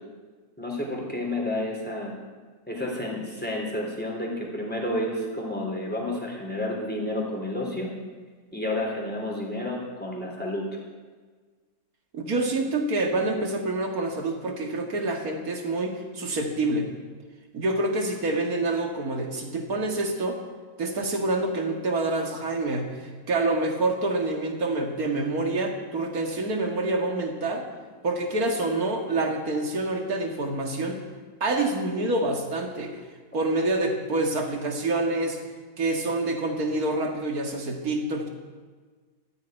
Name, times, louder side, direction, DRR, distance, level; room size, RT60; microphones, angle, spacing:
voice 1, 0.6-2.1 2.7-7.9 8.5-10.6, left 1 dB, 5° left, -2 dB, 3.5 m, -30 dB
voice 2, 12.1-16.9 17.5-20.4 20.8-27.7 28.0-31.0 31.4-33.0 33.3-35.4 35.8-38.3, right 2 dB, 70° right, 2 dB, 2.3 m, -27 dB
14.0 x 8.7 x 9.1 m, 1.4 s
omnidirectional pair, 1.6 m